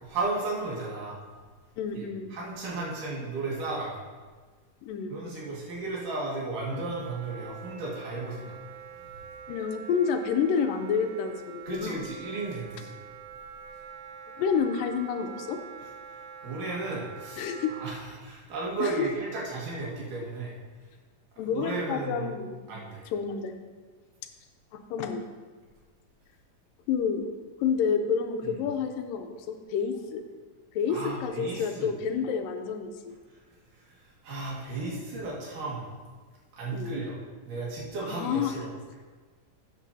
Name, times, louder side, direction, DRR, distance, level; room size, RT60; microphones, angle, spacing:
voice 1, 0.0-1.2 1.9-4.0 5.1-8.6 11.7-12.9 16.4-20.5 21.5-22.3 22.7-23.1 30.9-31.9 34.2-35.9 36.5-37.2 37.4-38.7, right 3 dB, 70° right, -4 dB, 3.4 m, -34 dB
voice 2, 1.8-2.4 4.8-5.3 9.5-12.0 14.4-15.6 17.4-17.7 18.8-19.1 21.4-22.7 23.1-23.6 24.7-25.2 26.9-27.2 27.6-30.2 30.7-33.2 36.7-37.0 38.0-38.6, left 6 dB, 85° left, 6 dB, 2.4 m, -29 dB
Wind instrument woodwind instrument, 6.7-18.0, right 7 dB, 85° right, 1.6 m, -45 dB
13.0 x 9.0 x 2.7 m, 1.4 s
omnidirectional pair, 3.9 m